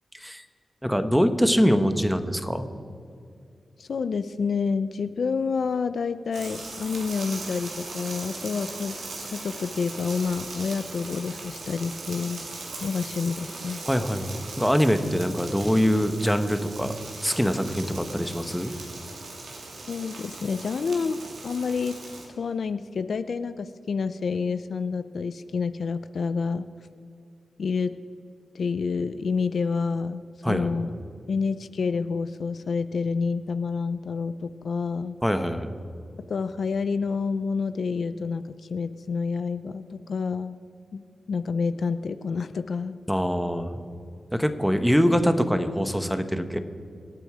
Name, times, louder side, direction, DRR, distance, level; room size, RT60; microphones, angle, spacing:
voice 1, 0.8-2.7 13.9-16.9 17.2-18.7 30.4-30.7 35.2-35.7 43.1-43.9 44.3-46.6, equal, ahead, 8 dB, 1.0 m, -23 dB
voice 2, 3.8-9.0 9.3-12.4 12.8-13.8 19.9-22.0 22.4-26.7 27.6-28.0 28.5-30.9 31.3-35.2 36.3-40.6 40.9-41.0 41.3-43.0, left 5 dB, 65° left, 12 dB, 0.5 m, -28 dB
sound 1, 6.3-22.3, right 3 dB, 80° right, 3.1 m, -39 dB
25.5 x 9.1 x 4.9 m, 2.3 s
wide cardioid pair, 95°, 0 cm